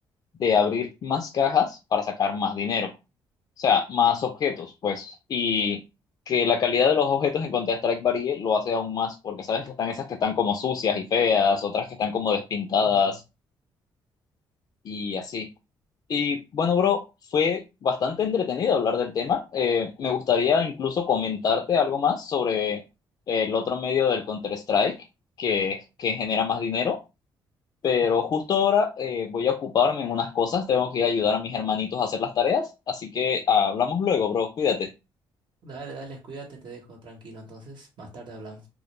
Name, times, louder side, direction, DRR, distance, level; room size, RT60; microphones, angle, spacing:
voice 1, 0.4-2.9 3.6-5.8 6.3-13.2 14.9-15.5 16.1-17.0 17.3-22.8 23.3-25.0 25.4-27.0 27.8-34.9, left 6 dB, 45° left, 0.3 m, -24 dB
voice 2, 12.8-13.2 28.0-28.1 35.6-38.7, right 3 dB, 60° right, 0.9 m, -42 dB
2.2 x 2.1 x 3.0 m
cardioid pair, 95°, 9 cm